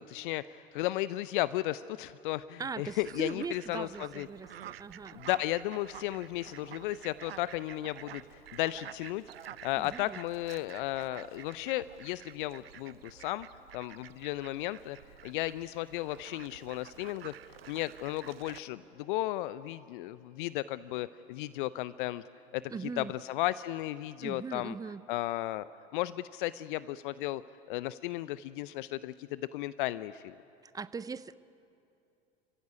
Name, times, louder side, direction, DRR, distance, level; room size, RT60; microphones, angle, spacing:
voice 1, 0.0-4.3 5.1-13.5 13.7-15.0 15.2-22.2 22.5-24.8 25.1-25.7 25.9-27.4 27.7-30.3, left 16 dB, 60° left, 17 dB, 0.5 m, -35 dB
voice 2, 2.6-5.2 9.8-10.2 22.7-23.1 24.2-25.0 30.7-31.3, right 5 dB, 10° right, 17 dB, 0.6 m, -40 dB
Fowl, 2.9-18.6, right 11 dB, 80° right, 0.6 m, -50 dB
Bowed string instrument, 8.6-25.0, left 2 dB, 30° left, 7.3 m, -67 dB
29.5 x 15.5 x 9.8 m, 2.7 s
figure-of-eight pair, 75°, 29 cm